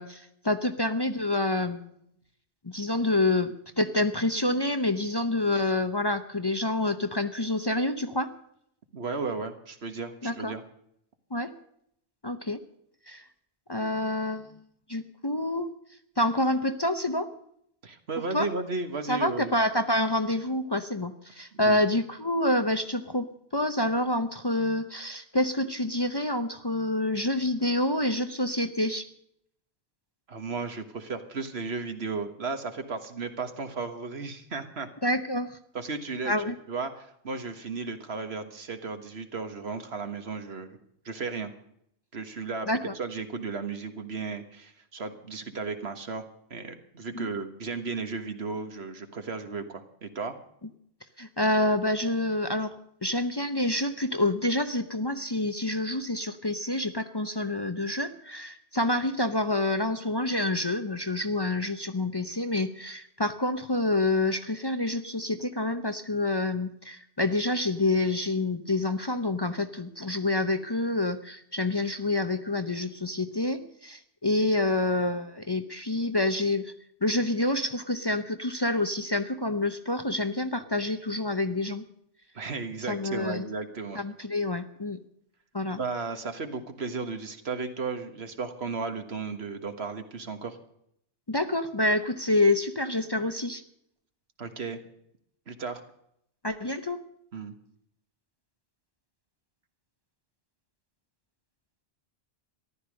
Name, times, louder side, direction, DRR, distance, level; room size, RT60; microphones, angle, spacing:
voice 1, 0.0-1.9 2.6-8.3 10.2-10.5 11.3-11.5 12.2-12.6 13.1-13.2 13.7-14.5 14.9-15.7 16.2-17.3 18.3-18.5 19.1-23.2 23.5-29.1 35.0-35.6 36.3-36.6 42.7-42.9 47.1-47.3 51.2-52.7 53.0-76.7 77.0-81.8 82.9-83.5 83.9-85.0 85.5-85.8 91.3-93.6 96.4-97.0, left 2 dB, 25° left, 8 dB, 0.7 m, -27 dB
voice 2, 8.9-10.6 17.8-19.5 21.6-21.8 30.3-34.9 35.7-40.8 41.0-41.5 42.1-46.2 46.5-50.3 82.3-84.0 85.8-90.6 94.4-94.8 95.5-95.8 97.3-97.5, right 4 dB, 75° right, 8 dB, 1.8 m, -34 dB
14.5 x 12.0 x 6.5 m, 0.72 s
omnidirectional pair, 1.1 m